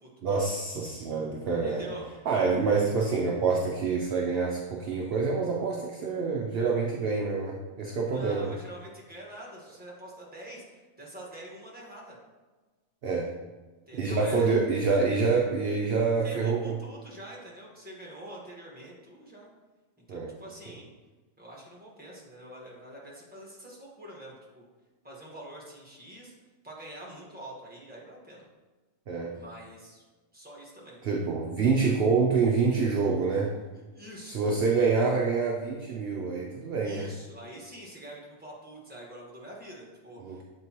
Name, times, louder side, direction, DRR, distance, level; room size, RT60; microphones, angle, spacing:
voice 1, 0.2-1.9 2.2-8.5 13.0-13.3 13.9-16.7 20.1-20.3 29.1-29.3 31.0-33.5 34.2-37.1 40.2-40.4, right 4 dB, 55° right, -1 dB, 0.8 m, -27 dB
voice 2, 1.6-2.0 8.1-12.2 13.9-14.9 16.2-19.5 20.1-20.9 21.4-24.6 25.0-26.3 26.6-28.4 29.3-30.0 30.3-31.0 33.7-34.4 36.8-40.4, right 1 dB, 5° right, -4 dB, 1.3 m, -45 dB
7.9 x 4.4 x 2.9 m, 1.3 s
omnidirectional pair, 1.4 m